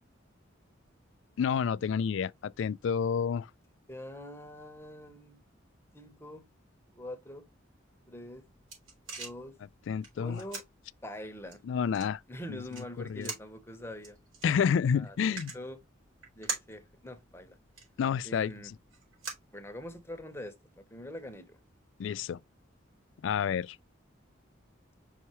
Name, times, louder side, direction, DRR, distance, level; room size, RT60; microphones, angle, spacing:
voice 1, 1.4-3.5 9.9-10.4 11.7-12.2 13.1-13.3 14.4-15.5 18.0-18.5 22.0-22.4 23.2-23.8, left 7 dB, 70° left, 0.3 m, -29 dB
voice 2, 3.9-5.4 5.9-6.5 6.9-7.5 8.1-8.4 9.2-9.6 10.2-10.6 11.0-11.6 12.3-14.2 14.9-15.8 16.3-17.6 18.2-18.7 19.5-21.6, left 1 dB, 10° left, 1.0 m, -44 dB
sound 1, 8.1-20.2, right 4 dB, 90° right, 4.5 m, -46 dB
5.6 x 5.6 x 3.0 m
head